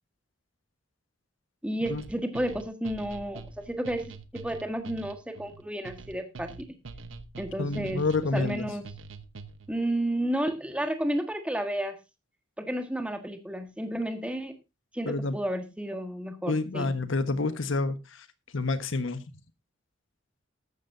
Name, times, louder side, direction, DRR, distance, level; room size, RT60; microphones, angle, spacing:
voice 1, 1.6-4.0 4.3-6.7 7.4-8.0 8.3-8.8 9.7-12.0 12.6-14.6 14.9-16.9, right 1 dB, 5° right, 1.5 m, -31 dB
sound 1, 1.9-9.8, right 3 dB, 80° right, 1.0 m, -45 dB
voice 2, 7.6-8.7 15.0-15.4 16.5-18.2 18.5-19.2, left 3 dB, 75° left, 1.3 m, -28 dB
13.5 x 12.5 x 2.7 m
head